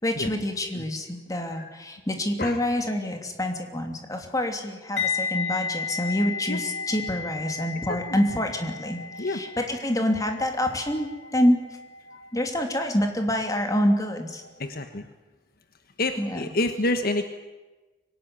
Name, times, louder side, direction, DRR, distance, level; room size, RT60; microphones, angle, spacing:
voice 1, 0.0-11.6 12.3-14.4 16.2-16.4, left 1 dB, 20° left, 4 dB, 3.0 m, -26 dB
sound 1, 5.0-13.9 14.2-14.5, left 5 dB, 75° left, 2.6 m, -34 dB
voice 2, 14.6-15.1 16.0-17.2, left 2 dB, 55° left, 7 dB, 1.3 m, -28 dB
24.5 x 18.0 x 9.8 m, 1.2 s
head